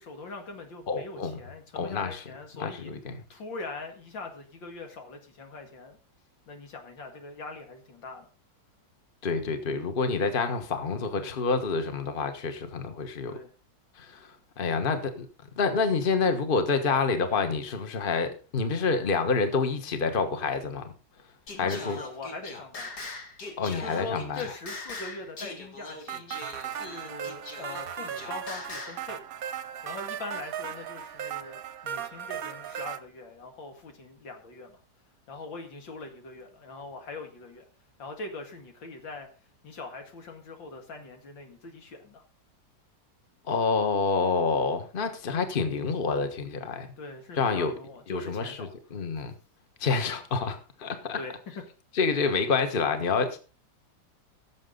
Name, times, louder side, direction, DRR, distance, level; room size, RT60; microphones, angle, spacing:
voice 1, 0.0-2.9 3.3-6.0 6.5-8.3 11.1-11.4 13.3-13.5 21.5-22.9 23.8-26.4 26.7-29.2 29.8-34.8 35.3-37.7 38.0-39.3 39.6-42.2 47.0-48.7 51.1-51.4, left 3 dB, 85° left, 2.7 m, -42 dB
voice 2, 0.9-1.4 1.7-2.2 2.6-3.1 9.2-13.3 14.0-15.3 15.6-20.9 21.6-22.0 23.6-24.4 43.5-46.9 47.4-47.7 48.1-49.3 49.8-51.2 52.0-53.4, left 4 dB, 30° left, 1.4 m, -28 dB
Singing, 21.5-29.1, left 3 dB, 60° left, 2.7 m, -41 dB
sound 1, 26.1-33.0, right 9 dB, 60° right, 1.1 m, -37 dB
17.0 x 7.4 x 3.9 m
omnidirectional pair, 2.0 m